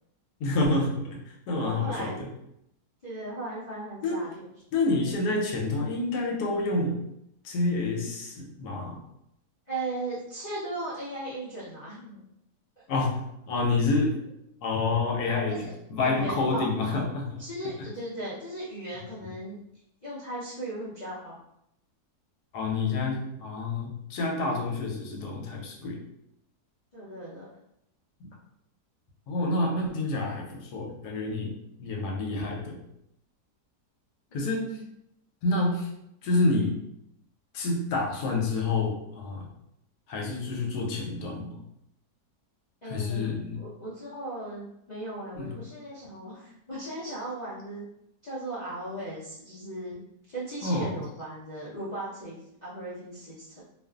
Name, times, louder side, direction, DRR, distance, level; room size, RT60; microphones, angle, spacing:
voice 1, 0.4-1.2 1.5-2.3 4.0-4.2 4.7-7.0 7.4-9.0 12.9-14.2 14.6-17.4 22.5-26.0 29.3-32.8 34.3-34.8 35.4-35.9 36.2-36.8 37.5-39.5 40.1-41.6 42.8-43.6 45.3-45.6 50.6-51.0, left 3 dB, 85° left, 0 dB, 1.2 m, -28 dB
voice 2, 1.6-2.3 3.0-4.3 9.7-12.2 12.8-12.9 15.1-15.2 15.5-15.7 16.0-16.7 17.4-19.6 20.0-21.4 26.9-27.5 34.3-34.9 42.8-43.3 43.6-47.8 48.2-50.0 50.3-53.6, right 1 dB, 55° left, -11 dB, 0.4 m, -37 dB
2.6 x 2.4 x 2.3 m, 0.78 s
omnidirectional pair, 1.7 m